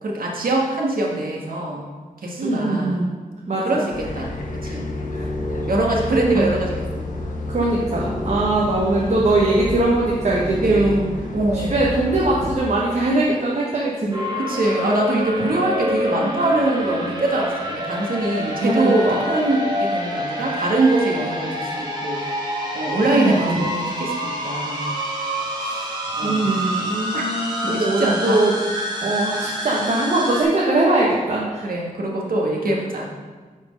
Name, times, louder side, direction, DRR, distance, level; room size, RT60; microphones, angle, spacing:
voice 1, 0.0-1.8 2.2-3.0 3.6-3.9 4.1-4.3 4.6-4.9 5.7-7.1 8.9-9.1 10.5-11.0 11.3-11.9 14.4-22.2 22.7-24.9 26.2-26.5 27.1-27.3 27.7-28.4 31.6-33.1, right 2 dB, 80° right, -1 dB, 1.6 m, -23 dB
voice 2, 2.4-3.1 3.5-3.8 5.1-5.3 5.8-5.9 6.3-6.5 7.5-11.1 11.5-14.3 18.6-19.2 23.1-23.7 25.6-28.5 29.0-31.7, right 2 dB, 55° right, -5 dB, 1.2 m, -21 dB
sound 1, 3.9-12.6, left 1 dB, 65° left, 1.3 m, -29 dB
sound 2, 14.1-30.4, equal, 30° right, 2.1 m, -27 dB
8.3 x 4.5 x 5.3 m, 1.4 s
wide cardioid pair, 105°, 15 cm